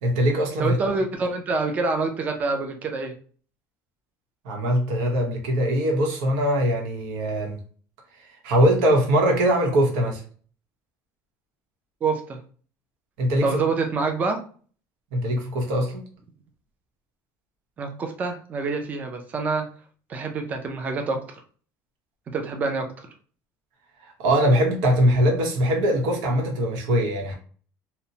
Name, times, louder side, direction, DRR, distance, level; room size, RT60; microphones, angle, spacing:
voice 1, 0.0-0.8 4.4-7.6 8.4-10.2 13.2-13.5 15.1-16.0 24.2-27.3, equal, 85° right, 1 dB, 0.9 m, -21 dB
voice 2, 0.6-3.1 12.0-12.4 13.4-14.4 17.8-19.7 20.1-21.4 22.3-23.1, right 4 dB, 20° right, 4 dB, 0.4 m, -26 dB
2.9 x 2.1 x 2.7 m, 0.42 s
cardioid pair, 170°, 7 cm